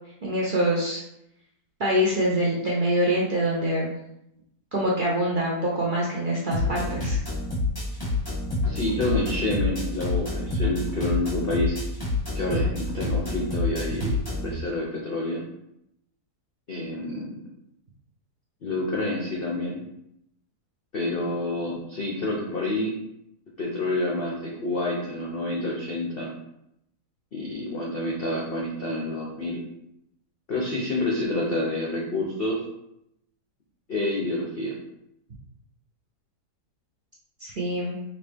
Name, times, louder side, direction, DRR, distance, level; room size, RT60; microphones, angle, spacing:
voice 1, 0.2-1.0 1.8-3.9 4.7-7.2 37.4-38.0, equal, 50° right, -5 dB, 0.6 m, -25 dB
sound 1, 6.5-14.5, left 2 dB, 20° left, 0.8 m, -28 dB
voice 2, 8.6-11.8 12.3-15.4 16.7-17.3 18.6-19.8 20.9-22.9 23.6-26.3 27.3-29.6 30.5-32.6 33.9-34.7, left 1 dB, 55° left, -3 dB, 0.6 m, -28 dB
4.0 x 2.8 x 3.4 m, 0.80 s
omnidirectional pair, 1.7 m